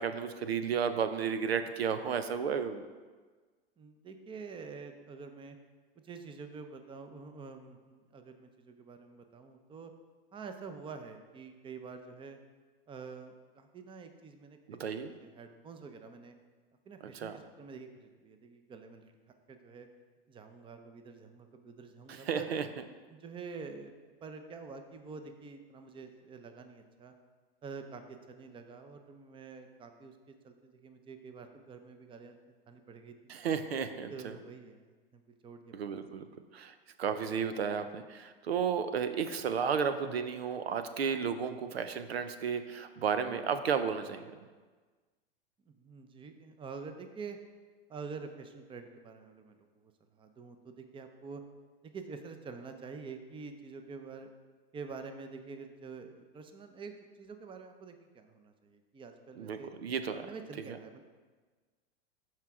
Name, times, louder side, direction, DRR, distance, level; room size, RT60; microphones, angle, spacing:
voice 1, 0.0-2.8 14.7-15.1 17.1-17.4 22.1-22.7 33.3-34.3 35.7-36.3 36.5-44.4 59.4-60.3 60.7-60.8, right 7 dB, 90° right, 10 dB, 0.7 m, -33 dB
voice 2, 3.8-5.6 6.0-9.9 10.3-12.4 12.9-14.8 15.2-16.3 16.9-19.1 19.5-19.9 20.3-22.6 23.1-27.1 27.6-32.4 32.7-33.3 34.1-35.9 45.7-47.4 47.9-51.4 51.8-54.3 54.7-59.7 60.1-61.0, right 5 dB, 15° right, 7 dB, 0.7 m, -47 dB
13.0 x 4.6 x 3.7 m, 1.4 s
hypercardioid pair, 110°, 30 cm